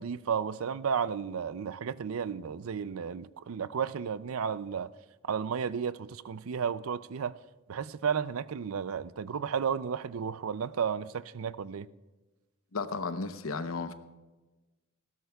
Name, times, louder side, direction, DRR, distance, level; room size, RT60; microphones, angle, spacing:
voice 1, 0.0-4.9 5.2-7.4 7.7-11.9, right 7 dB, 90° right, 0.5 m, -33 dB
voice 2, 12.7-13.9, left 4 dB, 80° left, 0.9 m, -34 dB
19.5 x 16.5 x 2.3 m
head